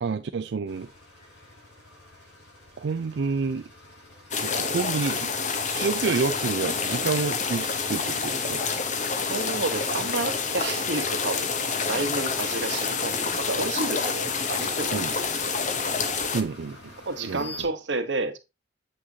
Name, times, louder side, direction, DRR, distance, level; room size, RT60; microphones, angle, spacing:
voice 1, 0.0-0.9 2.8-3.6 4.3-5.3 5.6-8.6 14.9-15.1 16.3-16.9 17.3-17.5, right 4 dB, 70° right, 0.4 m, -29 dB
sound 1, 0.7-17.6, left 2 dB, 80° left, 4.8 m, -48 dB
sound 2, 4.3-16.4, left 5 dB, 40° left, 0.9 m, -28 dB
voice 2, 9.3-11.5 11.9-15.0 17.0-18.4, right 3 dB, 85° right, 1.1 m, -30 dB
7.8 x 6.2 x 2.8 m
head